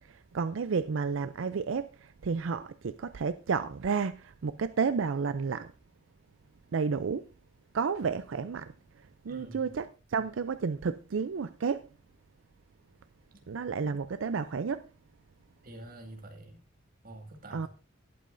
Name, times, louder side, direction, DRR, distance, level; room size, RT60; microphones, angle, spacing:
voice 1, 0.0-5.7 6.7-7.3 7.7-11.9 13.5-14.9 17.5-17.7, right 5 dB, 85° right, 0.5 m, -31 dB
voice 2, 9.3-9.7 15.6-16.6 17.0-17.7, right 1 dB, 45° right, 2.1 m, -47 dB
18.5 x 8.5 x 2.6 m
head